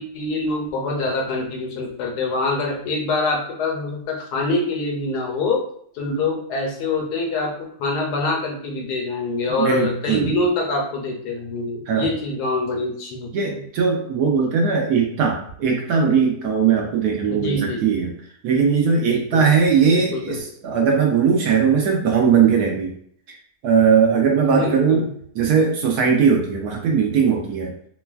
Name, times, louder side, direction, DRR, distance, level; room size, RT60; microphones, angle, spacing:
voice 1, 0.0-5.6 5.9-13.6 17.3-17.9 19.0-19.5 19.9-20.4 24.5-25.1, left 2 dB, 75° left, 1 dB, 1.1 m, -25 dB
voice 2, 9.5-10.3 11.9-12.1 13.3-18.1 18.4-22.9 23.6-25.1 25.4-27.7, right 6 dB, 70° right, 1 dB, 1.0 m, -19 dB
3.1 x 2.2 x 2.2 m, 0.64 s
omnidirectional pair, 1.9 m